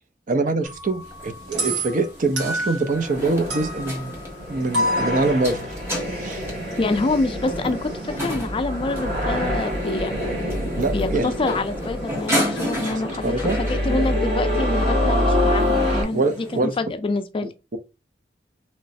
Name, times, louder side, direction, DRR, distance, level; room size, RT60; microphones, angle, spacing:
voice 1, 0.3-4.2 4.5-5.6 6.2-6.4 10.7-11.3 12.8-14.0 16.1-16.7, right 3 dB, 45° right, 0.5 m, -24 dB
sound 1, 0.6-3.2 3.5-7.2, equal, 85° right, 1.7 m, -30 dB
sound 2, 1.0-16.6, equal, 15° right, 1.2 m, -33 dB
sound 3, 2.9-16.0, left 1 dB, 65° right, 1.6 m, -26 dB
voice 2, 6.8-10.1 10.8-16.2 16.6-17.5, left 3 dB, 30° left, 0.4 m, -26 dB
3.1 x 3.0 x 2.7 m
head